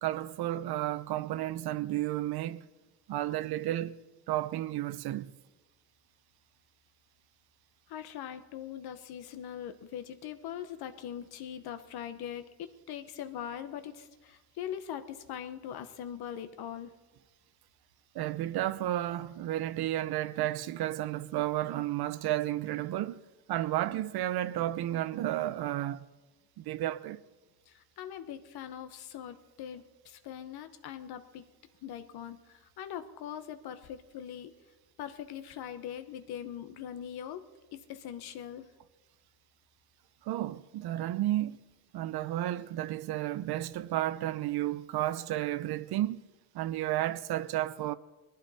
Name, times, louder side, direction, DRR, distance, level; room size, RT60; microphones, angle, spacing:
voice 1, 0.0-2.7 3.1-4.0 4.3-5.3 18.1-23.2 23.5-26.0 26.6-27.2 40.2-41.6 41.9-46.2 46.5-47.9, right 14 dB, 75° right, 0.7 m, -32 dB
voice 2, 7.9-16.9 27.7-31.4 31.8-34.5 35.0-37.4 37.7-38.7, left 9 dB, 80° left, 1.0 m, -41 dB
21.5 x 12.0 x 4.2 m
cardioid pair, 170°, 38 cm